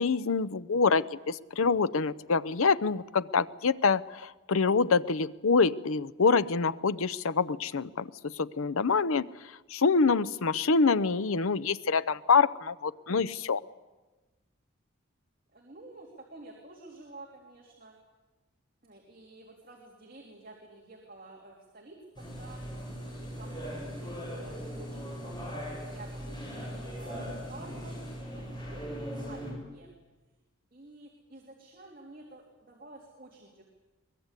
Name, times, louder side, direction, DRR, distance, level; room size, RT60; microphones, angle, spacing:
voice 1, 0.0-9.3 9.7-13.6, left 4 dB, 85° left, 15 dB, 0.7 m, -26 dB
voice 2, 15.5-17.9 18.8-25.6 25.8-28.0 28.3-29.9 30.7-33.6, right 2 dB, 40° right, -1 dB, 3.1 m, -50 dB
sound 1, 22.1-29.5, equal, 20° left, 7.3 m, -39 dB
23.5 x 20.5 x 8.2 m, 1.2 s
head